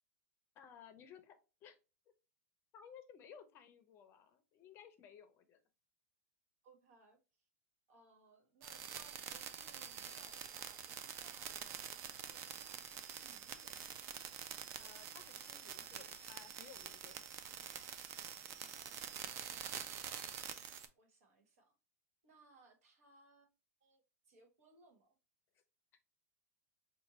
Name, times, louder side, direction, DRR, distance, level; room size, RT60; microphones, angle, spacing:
voice 1, 0.6-1.8 2.7-5.6 14.8-17.2, left 8 dB, 30° left, 0.6 m, -58 dB
voice 2, 6.6-7.2 7.9-14.0 17.1-17.2 17.5-17.8 18.6-19.6 20.9-21.7 22.2-23.5 23.8-25.1, right 3 dB, 70° right, 1.4 m, -67 dB
sound 1, 8.6-20.9, right 8 dB, 35° right, 0.4 m, -47 dB
5.2 x 2.3 x 3.0 m
supercardioid pair, 150°, 8 cm